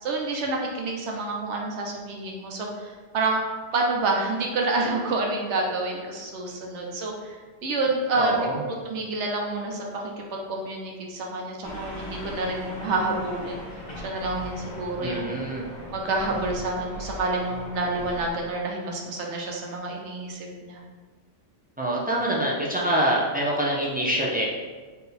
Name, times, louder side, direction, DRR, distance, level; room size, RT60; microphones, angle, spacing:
voice 1, 0.0-3.4 3.7-7.4 7.6-8.4 8.8-13.6 14.0-15.2 15.9-20.8, right 2 dB, 90° right, 0 dB, 1.0 m, -28 dB
voice 2, 8.2-8.7 15.0-15.7 21.8-24.5, right 1 dB, 15° right, -5 dB, 0.4 m, -25 dB
sound 1, 11.6-18.3, equal, 30° left, 0.7 m, -39 dB
3.9 x 2.8 x 4.1 m, 1.4 s
omnidirectional pair, 1.2 m